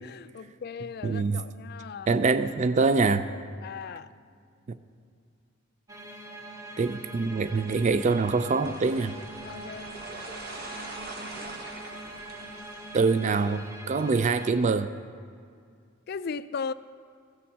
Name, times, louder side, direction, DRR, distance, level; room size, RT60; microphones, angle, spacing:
voice 1, 0.0-2.2 3.6-4.1 9.4-10.0 16.1-16.7, left 5 dB, 50° left, 0.4 m, -37 dB
voice 2, 1.0-1.4 2.1-3.2 6.8-9.1 12.9-14.9, right 4 dB, 35° right, 0.4 m, -24 dB
sound 1, 5.9-14.5, right 1 dB, 15° right, 1.0 m, -43 dB
sound 2, 8.6-14.4, right 2 dB, 50° right, 1.4 m, -44 dB
15.0 x 7.1 x 7.4 m
head